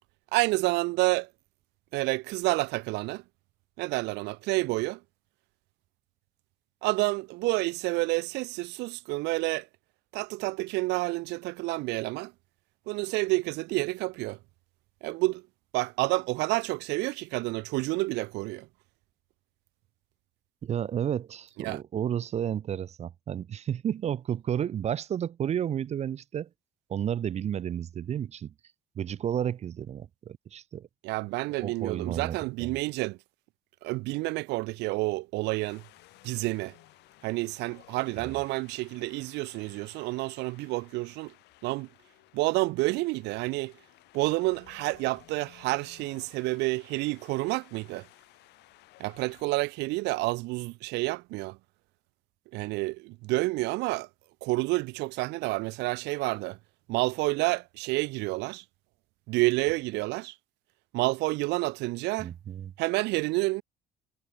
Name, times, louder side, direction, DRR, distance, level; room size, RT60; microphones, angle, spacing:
voice 1, 0.3-1.3 1.9-3.2 3.8-5.0 6.8-9.7 10.1-12.3 12.9-14.4 15.0-15.4 15.7-18.7 21.6-21.8 31.0-33.2 33.8-35.8 36.2-36.7 37.2-41.3 41.6-41.9 42.3-43.7 44.1-48.1 49.0-51.6 52.5-54.1 54.4-56.6 56.9-58.6 59.3-60.3 60.9-62.3 62.8-63.6, right 22 dB, 90° right, 0.6 m, -29 dB
voice 2, 20.6-26.5 26.9-28.5 29.0-30.9 31.6-32.8 38.2-38.4 62.2-62.7, right 9 dB, 40° right, 0.5 m, -32 dB
Wind, 35.6-49.4, left 18 dB, 85° left, 2.2 m, -57 dB
cardioid pair, 110°, 17 cm